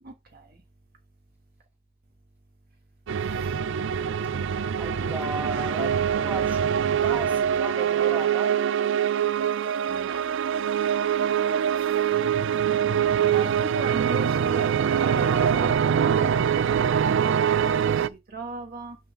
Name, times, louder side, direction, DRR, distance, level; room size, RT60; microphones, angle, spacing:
voice 1, 0.0-0.6 3.2-3.6 9.9-10.2 11.7-12.2 13.2-16.6 16.9-17.4 17.9-19.0, right 2 dB, 45° right, 1.4 m, -39 dB
sound 1, 3.1-18.1, right 8 dB, 65° right, 0.4 m, -24 dB
voice 2, 4.8-6.7 7.0-8.6, right 1 dB, 10° right, 2.0 m, -35 dB
6.5 x 6.2 x 3.7 m
head